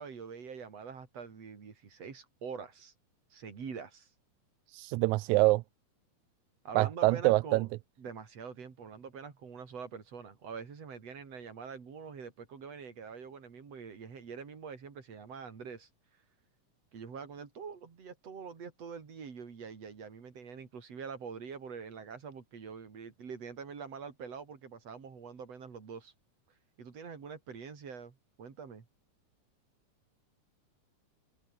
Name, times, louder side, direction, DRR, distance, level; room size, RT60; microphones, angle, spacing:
voice 1, 0.0-2.9 3.3-4.1 6.6-7.7 8.0-15.9 16.9-26.1 26.8-28.9, right 6 dB, 55° right, 4.4 m, -45 dB
voice 2, 4.7-5.6 6.8-7.7, right 21 dB, 80° right, 1.9 m, -25 dB
omnidirectional pair, 3.6 m